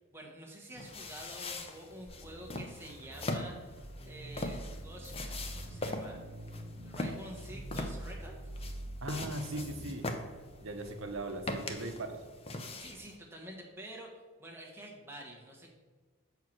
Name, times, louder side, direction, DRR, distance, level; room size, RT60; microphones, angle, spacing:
voice 1, 0.0-6.4 6.8-8.5 12.8-14.1 14.4-15.7, right 1 dB, 10° right, -1 dB, 1.1 m, -48 dB
sound 1, 0.8-13.2, left 2 dB, 25° left, 0.5 m, -42 dB
sound 2, 2.1-11.2, right 1 dB, 35° right, 1.3 m, -46 dB
voice 2, 9.0-10.1 10.6-12.2, right 1 dB, 65° right, 6 dB, 0.8 m, -39 dB
6.5 x 4.6 x 6.0 m, 1.4 s
head